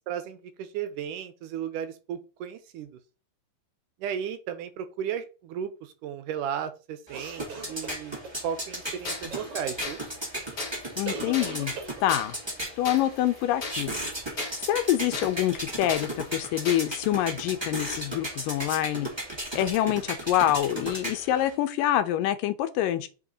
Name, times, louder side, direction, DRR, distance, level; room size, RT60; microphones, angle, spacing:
voice 1, 0.1-3.0 4.0-8.1 8.4-10.0, right 9 dB, 80° right, 2.3 m, -34 dB
sound 1, 7.1-21.5, right 1 dB, 10° right, 2.4 m, -36 dB
sound 2, 7.1-8.4 9.3-9.8 11.0-12.3, right 4 dB, 50° right, 2.5 m, -39 dB
sound 3, 8.8-17.2, left 4 dB, 35° left, 1.7 m, -39 dB
voice 2, 11.0-11.7 12.0-12.3 12.8-13.9 14.7-19.1 19.5-23.1, left 12 dB, 85° left, 2.5 m, -26 dB
5.7 x 5.3 x 4.0 m
omnidirectional pair, 3.8 m